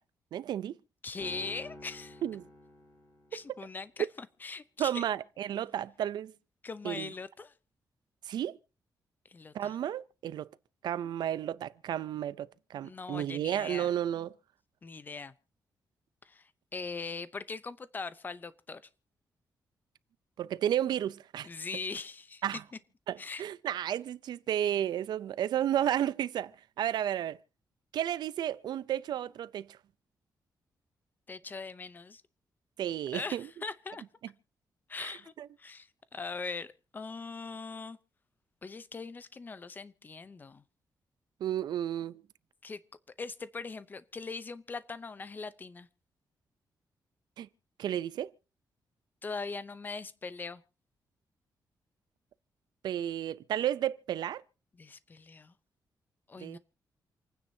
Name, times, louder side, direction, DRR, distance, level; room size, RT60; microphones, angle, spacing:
voice 1, 0.3-0.8 2.2-2.5 3.3-3.4 4.8-6.3 6.8-7.1 8.3-8.6 9.5-10.5 10.8-14.3 20.4-21.5 22.4-22.6 23.1-26.5 26.8-27.4 27.9-29.7 32.8-33.5 35.0-35.5 41.4-42.2 47.4-47.5 47.8-48.3 52.8-54.4 56.4-56.6, right 11 dB, 85° right, 0.5 m, -32 dB
voice 2, 1.0-2.2 3.3-4.1 4.4-5.0 6.6-7.5 9.3-9.8 12.8-13.9 14.8-15.3 16.2-18.8 21.4-22.4 23.2-23.4 31.3-32.2 33.1-34.0 34.9-35.3 35.6-38.0 38.6-40.6 42.6-42.8 43.2-45.9 49.2-50.6 54.8-55.5 56.3-56.6, left 4 dB, 25° left, 0.7 m, -41 dB
sound 1, 1.2-3.6, left 1 dB, 45° left, 5.6 m, -49 dB
28.0 x 9.6 x 2.8 m
wide cardioid pair, 150°, 7 cm